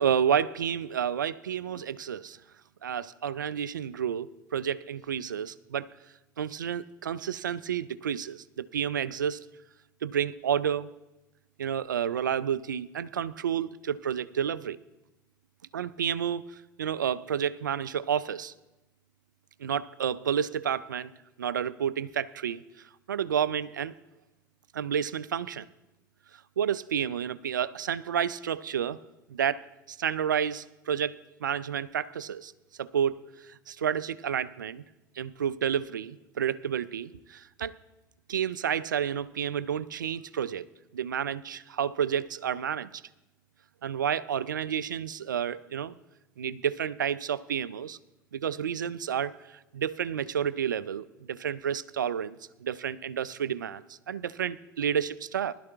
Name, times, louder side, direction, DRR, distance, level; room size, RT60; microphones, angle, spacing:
voice 1, 0.0-2.4 2.8-5.9 6.4-9.5 10.0-10.9 11.6-14.8 15.7-18.5 19.6-21.1 21.4-22.6 23.1-23.9 24.7-25.7 26.6-29.0 29.3-32.5 32.8-34.8 35.2-37.7 38.3-40.7 40.9-42.9 43.8-46.0 46.4-48.0 48.3-55.5, right 8 dB, 80° right, 0.4 m, -30 dB
20.5 x 12.0 x 2.4 m
figure-of-eight pair, 70°, 10 cm